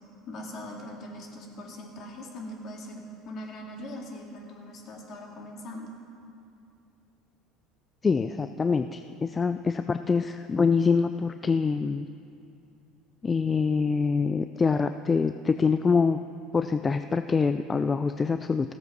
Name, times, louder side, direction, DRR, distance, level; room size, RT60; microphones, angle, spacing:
voice 1, 0.3-5.9, left 1 dB, 50° left, 0 dB, 2.2 m, -41 dB
voice 2, 8.0-12.1 13.2-16.2 16.5-18.7, left 5 dB, 25° left, 10 dB, 0.3 m, -25 dB
15.0 x 7.8 x 6.0 m, 2.6 s
supercardioid pair, 85°, 0 cm